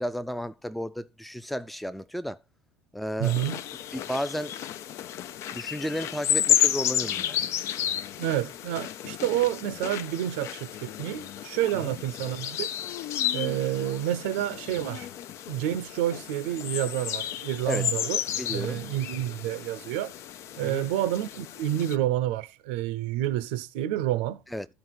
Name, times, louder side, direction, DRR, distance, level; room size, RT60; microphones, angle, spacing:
voice 1, 0.0-2.4 2.9-3.4 3.9-4.6 5.5-7.4 11.7-12.0 17.7-17.9 18.4-18.8 20.6-20.9 24.5-24.7, equal, ahead, 0.5 m, -33 dB
sound 1, 3.2-22.0, left 10 dB, 50° left, 0.5 m, -32 dB
voice 2, 3.2-3.6 8.2-12.7 13.3-15.1 15.5-18.2 18.5-20.1 20.6-24.4, right 13 dB, 65° right, 0.7 m, -29 dB
12.5 x 4.6 x 5.8 m
figure-of-eight pair, 70°, 6 cm